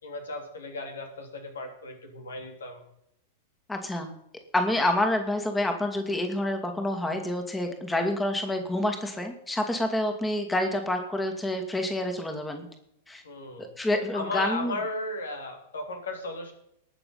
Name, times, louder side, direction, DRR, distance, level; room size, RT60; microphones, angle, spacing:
voice 1, 0.0-2.8 7.9-8.0 13.2-13.7 14.1-16.5, left 2 dB, 75° left, 4 dB, 3.6 m, -35 dB
voice 2, 3.7-4.1 4.5-12.7 13.1-13.2 13.6-14.7, left 1 dB, 10° left, 5 dB, 2.3 m, -28 dB
20.5 x 7.0 x 5.7 m, 0.75 s
figure-of-eight pair, 95°, 0 cm